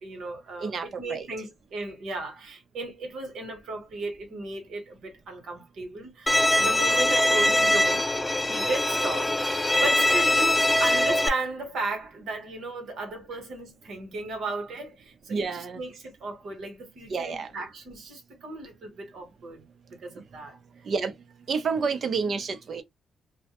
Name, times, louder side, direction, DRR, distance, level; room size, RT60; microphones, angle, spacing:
voice 1, 0.0-6.3 6.6-8.1 8.5-20.6, right 2 dB, 75° right, 1.0 m, -35 dB
voice 2, 0.6-1.3 15.3-15.8 17.1-17.5 20.9-21.1 21.5-22.8, right 5 dB, 60° right, 0.6 m, -29 dB
Bowed string instrument, 6.3-11.3, left 1 dB, 20° left, 0.3 m, -22 dB
2.1 x 2.1 x 2.8 m
cardioid pair, 70°, 0 cm